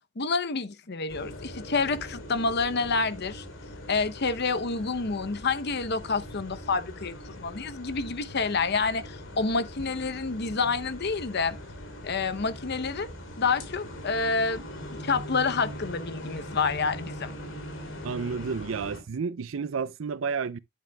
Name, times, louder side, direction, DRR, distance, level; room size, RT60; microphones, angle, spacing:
voice 1, 0.2-3.4 3.9-11.6 12.0-13.1 13.4-14.7 15.0-17.3, left 4 dB, 55° left, 0.8 m, -28 dB
sound 1, 1.1-19.0, equal, 75° left, 3.0 m, -41 dB
voice 2, 18.0-20.6, right 5 dB, 80° right, 0.5 m, -31 dB
9.8 x 8.9 x 2.3 m
head